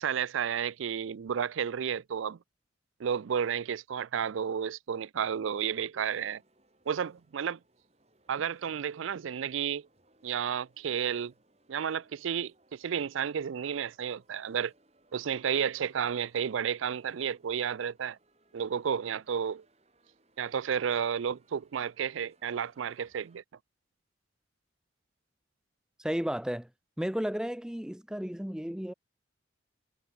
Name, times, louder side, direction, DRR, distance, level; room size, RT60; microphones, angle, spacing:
voice 1, 0.0-2.4 3.0-6.4 6.9-7.6 8.3-9.8 10.2-11.3 11.7-14.7 15.1-18.2 18.5-19.6 20.4-23.4, right 7 dB, 85° right, 0.4 m, -32 dB
sound 1, 6.1-23.4, right 2 dB, 35° right, 7.0 m, -68 dB
voice 2, 26.0-26.7 27.0-28.9, equal, 5° right, 0.4 m, -33 dB
head